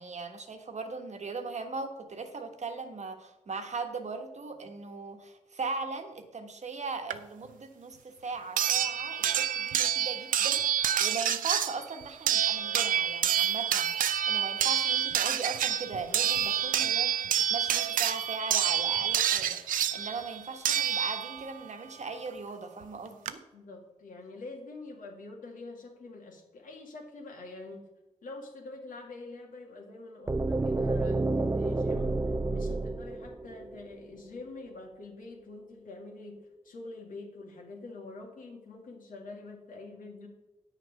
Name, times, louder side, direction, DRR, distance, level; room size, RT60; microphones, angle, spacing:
voice 1, 0.0-23.4, right 4 dB, 55° right, 6 dB, 1.3 m, -39 dB
sound 1, 7.1-7.2 8.6-21.6 22.8-22.9 23.3-23.4, right 10 dB, 85° right, 0.5 m, -28 dB
voice 2, 23.5-27.8 28.2-32.2 32.5-40.3, left 3 dB, 80° left, 1 dB, 2.1 m, -45 dB
sound 2, 30.3-34.2, right 2 dB, 20° right, 0.5 m, -30 dB
8.7 x 6.6 x 5.2 m, 1.0 s
cardioid pair, 50°, 14 cm